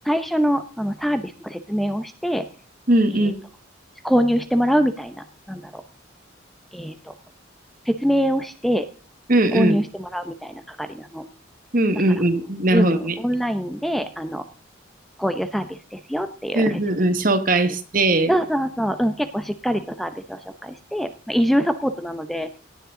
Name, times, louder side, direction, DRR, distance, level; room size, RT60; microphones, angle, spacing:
voice 1, 0.1-2.4 3.1-3.3 4.0-5.8 6.7-7.1 7.9-8.9 9.5-11.2 12.7-14.4 15.2-17.0 18.3-22.6, equal, ahead, 9 dB, 0.7 m, -24 dB
voice 2, 2.9-3.3 9.3-9.8 11.7-13.2 16.5-18.3, right 1 dB, 45° right, 9 dB, 1.5 m, -19 dB
18.0 x 9.7 x 3.8 m, 0.39 s
head